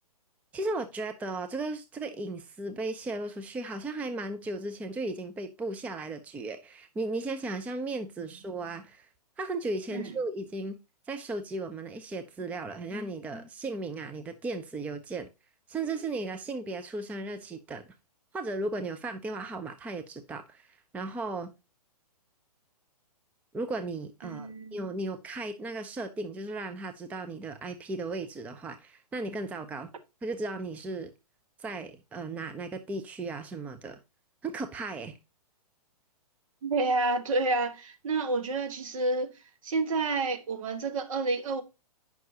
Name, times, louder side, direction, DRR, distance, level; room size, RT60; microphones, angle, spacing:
voice 1, 0.5-9.1 9.4-10.8 11.1-15.3 15.7-17.8 18.3-21.5 23.5-29.9 30.2-31.1 31.6-34.0 34.4-35.2, right 2 dB, 5° right, 0.5 m, -36 dB
voice 2, 24.2-24.8 36.6-39.4 39.6-41.6, right 3 dB, 55° right, 1.5 m, -29 dB
9.2 x 5.8 x 2.8 m
figure-of-eight pair, 120°, 20 cm